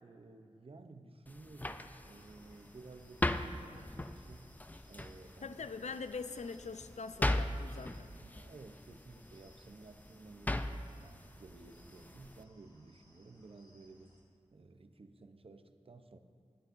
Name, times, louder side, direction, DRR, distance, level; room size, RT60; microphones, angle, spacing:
voice 1, 0.0-4.6 4.9-5.6 8.3-14.2 14.5-16.2, right 3 dB, 50° right, 7 dB, 0.6 m, -55 dB
sound 1, 1.3-12.4, left 1 dB, 15° left, 0.4 m, -40 dB
sound 2, 2.0-14.2, left 1 dB, 35° left, 2.0 m, -67 dB
voice 2, 5.4-8.1, left 4 dB, 75° left, 11 dB, 0.4 m, -43 dB
21.0 x 8.9 x 2.6 m, 2.4 s
wide cardioid pair, 65°, 12 cm